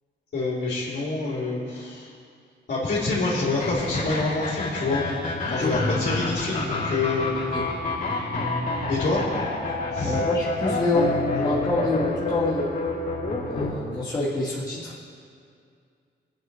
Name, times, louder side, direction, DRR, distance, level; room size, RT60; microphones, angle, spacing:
voice 1, 0.3-2.1 2.7-5.0 5.5-7.3 8.9-9.2 9.9-10.2, left 3 dB, 65° left, -8 dB, 3.3 m, -26 dB
sound 1, 3.6-13.7, left 3 dB, 45° left, 3.0 m, -28 dB
voice 2, 10.0-12.7 13.4-15.1, left 2 dB, 20° left, -8 dB, 1.9 m, -26 dB
21.0 x 9.4 x 3.4 m, 2.3 s
wide cardioid pair, 130°, 19 cm